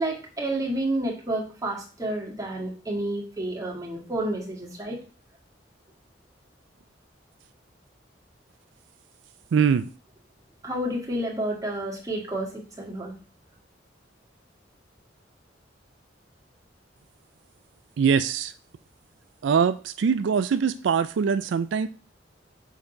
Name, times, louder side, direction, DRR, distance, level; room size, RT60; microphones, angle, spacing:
voice 1, 0.0-5.0 10.6-13.1, right 1 dB, 20° right, 1.8 m, -30 dB
voice 2, 9.5-9.9 18.0-18.5 19.4-21.9, right 6 dB, 75° right, 0.3 m, -23 dB
6.3 x 3.8 x 5.7 m
head